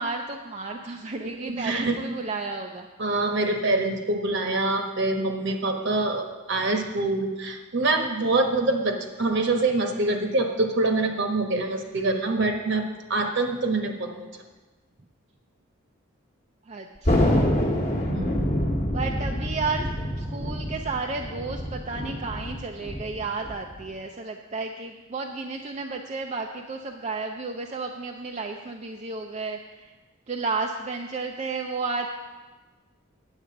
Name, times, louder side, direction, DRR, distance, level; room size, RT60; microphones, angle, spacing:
voice 1, 0.0-2.9 16.7-17.6 18.9-19.9 20.2-29.9 30.3-32.1, right 4 dB, 35° right, 2 dB, 0.5 m, -32 dB
voice 2, 1.4-1.9 3.0-12.8 13.1-14.1 17.9-18.3, right 2 dB, 60° right, 4 dB, 1.2 m, -25 dB
Thunder, 17.0-23.9, left 1 dB, 35° left, 1.2 m, -26 dB
9.0 x 8.2 x 5.9 m, 1.2 s
head